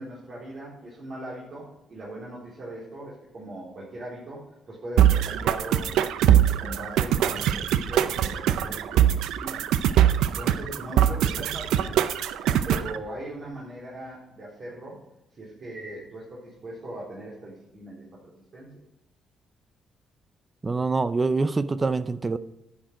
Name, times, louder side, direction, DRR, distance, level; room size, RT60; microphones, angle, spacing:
voice 1, 0.0-5.9 6.6-9.6 10.2-11.9 12.6-15.0 15.3-18.7, right 1 dB, 50° right, -7 dB, 4.1 m, -40 dB
sound 1, 5.0-13.0, right 10 dB, 90° right, 0.6 m, -22 dB
voice 2, 20.6-22.4, right 3 dB, 25° right, 14 dB, 0.5 m, -25 dB
10.5 x 9.1 x 4.9 m, 0.93 s
cardioid pair, 90°, 0 cm